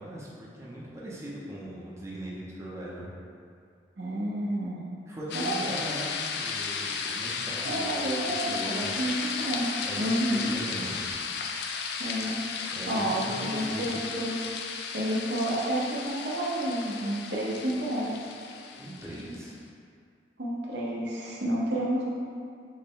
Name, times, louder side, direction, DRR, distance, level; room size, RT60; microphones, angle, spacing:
voice 1, 0.0-3.1 5.1-7.9 8.4-8.9 9.8-11.1 12.7-14.0 18.7-19.5, right 1 dB, 15° right, -7 dB, 0.6 m, -39 dB
voice 2, 4.0-4.8 5.3-5.8 7.6-9.7 10.0-10.5 12.0-12.4 12.9-14.4 14.9-18.3 20.4-22.0, right 1 dB, 70° right, -5 dB, 0.8 m, -30 dB
sound 1, 5.3-19.4, left 5 dB, 65° left, 0.3 m, -34 dB
6.5 x 2.2 x 3.7 m, 2.2 s
head